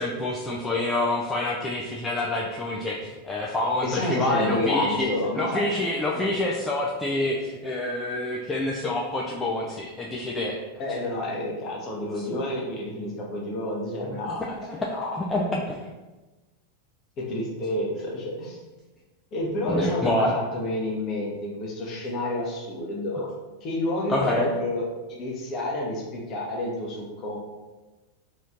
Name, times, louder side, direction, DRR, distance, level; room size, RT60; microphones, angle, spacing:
voice 1, 0.0-5.1 5.3-10.6 12.2-12.4 14.1-15.9 19.7-20.3 24.1-24.5, left 1 dB, 15° left, -3 dB, 0.3 m, -27 dB
voice 2, 3.8-5.6 6.1-6.2 10.8-15.1 17.2-18.6 19.3-23.3 23.6-24.8 25.1-27.4, left 1 dB, 35° left, -2 dB, 0.8 m, -29 dB
3.0 x 3.0 x 2.4 m, 1.2 s
figure-of-eight pair, 90°, 0 cm